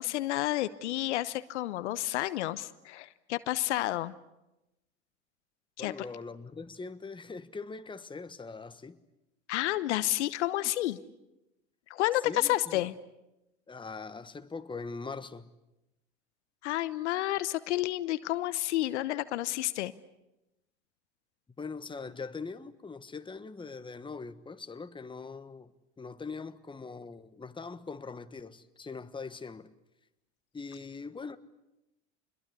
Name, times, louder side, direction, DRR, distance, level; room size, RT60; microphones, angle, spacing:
voice 1, 0.0-4.1 5.8-5.9 9.5-11.0 11.9-12.9 16.6-19.9, left 15 dB, 75° left, 1.0 m, -30 dB
voice 2, 5.8-9.0 12.3-12.8 13.7-15.5 21.6-25.7 26.0-29.7 30.5-31.4, left 4 dB, 15° left, 1.3 m, -42 dB
26.5 x 21.5 x 8.3 m
hypercardioid pair, 80°, 35 cm